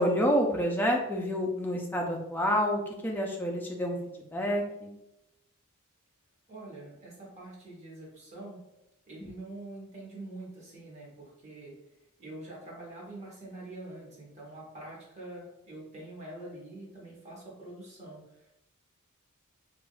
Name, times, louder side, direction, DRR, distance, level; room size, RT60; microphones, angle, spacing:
voice 1, 0.0-4.9 9.2-9.3, equal, 10° left, 0 dB, 0.4 m, -28 dB
voice 2, 6.5-8.6 9.1-11.7 12.2-18.5, right 2 dB, 30° right, -4 dB, 1.1 m, -45 dB
3.4 x 2.5 x 2.3 m, 0.88 s
head